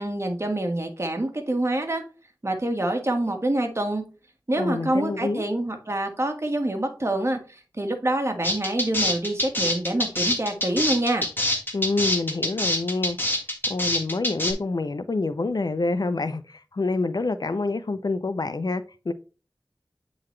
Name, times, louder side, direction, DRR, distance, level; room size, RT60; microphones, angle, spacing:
voice 1, 0.0-2.0 2.4-4.0 4.5-11.3, right 1 dB, 40° right, 1.6 m, -26 dB
voice 2, 4.6-5.4 11.7-13.2 13.7-19.1, left 3 dB, 65° left, 0.5 m, -27 dB
sound 1, 8.4-14.5, left 1 dB, 25° left, 1.6 m, -25 dB
8.6 x 3.9 x 3.1 m
wide cardioid pair, 55°, 7 cm